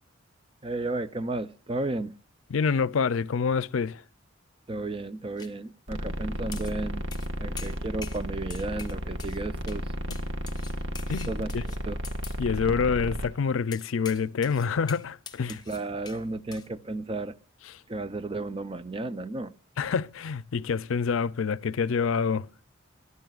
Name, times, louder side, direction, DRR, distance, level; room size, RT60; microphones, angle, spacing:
voice 1, 0.6-2.1 4.7-7.1 7.4-9.9 11.3-12.0 15.5-17.3 17.9-19.5, right 2 dB, 25° right, 0.6 m, -33 dB
voice 2, 2.5-4.0 11.1-11.6 12.4-15.6 17.7-17.8 19.8-22.5, left 5 dB, 85° left, 0.5 m, -27 dB
sound 1, 5.4-5.5 6.5-6.8 7.1-7.3 7.6-8.2 8.5-9.4 9.7-9.8 10.1-12.4 13.7-16.2 16.5-16.7, left 7 dB, 20° left, 1.0 m, -44 dB
sound 2, 5.9-13.3, equal, 70° right, 1.4 m, -33 dB
23.0 x 12.5 x 2.4 m
head